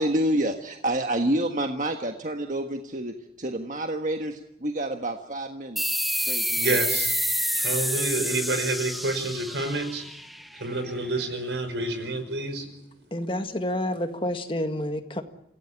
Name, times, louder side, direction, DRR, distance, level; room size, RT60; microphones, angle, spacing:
voice 1, 0.0-6.8, right 1 dB, 45° right, 1.5 m, -28 dB
sound 1, 5.8-10.9, equal, ahead, 1.0 m, -28 dB
voice 2, 6.6-7.1 7.5-10.1 10.5-12.7, right 2 dB, 85° right, 5.6 m, -28 dB
voice 3, 13.1-15.2, left 1 dB, 30° left, 1.8 m, -29 dB
27.5 x 17.0 x 10.0 m
head